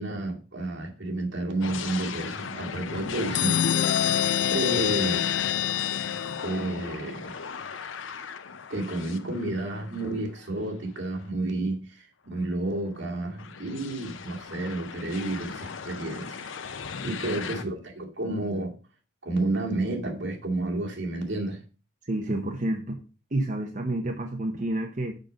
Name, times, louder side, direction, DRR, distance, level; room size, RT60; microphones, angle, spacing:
voice 1, 0.0-4.0 4.5-5.3 6.4-7.3 8.7-18.8 19.2-21.6, right 2 dB, 70° right, 2.4 m, -31 dB
sound 1, 1.6-10.7 11.2-11.3 12.8-17.6, left 5 dB, 90° left, 0.7 m, -37 dB
sound 2, 3.3-6.9, left 10 dB, 65° left, 0.3 m, -26 dB
voice 2, 17.0-17.4 22.0-23.0 23.3-25.1, right 1 dB, 40° right, 0.9 m, -29 dB
6.7 x 5.2 x 6.3 m
head